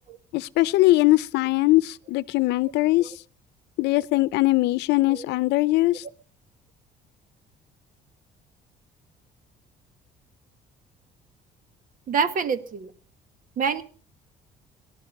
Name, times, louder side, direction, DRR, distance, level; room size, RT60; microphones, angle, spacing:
voice 1, 0.3-3.1 3.8-6.0, left 18 dB, 85° left, 0.7 m, -21 dB
voice 2, 12.1-12.9 13.6-13.8, right 6 dB, 55° right, 1.6 m, -26 dB
18.0 x 12.0 x 5.5 m
cardioid pair, 110°, 17 cm